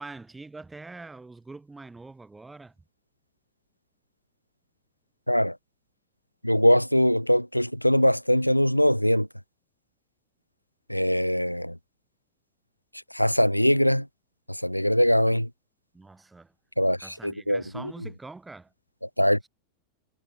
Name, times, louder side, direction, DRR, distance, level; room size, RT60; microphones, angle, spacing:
voice 1, 0.0-2.7 15.9-16.5 17.0-18.7, right 3 dB, 10° right, 7.7 m, -44 dB
voice 2, 6.4-9.3 10.9-11.8 13.1-14.1 14.5-15.5 16.8-17.0 17.2-17.6 19.2-19.5, equal, 90° left, 0.8 m, -22 dB
figure-of-eight pair, 90°, 0 cm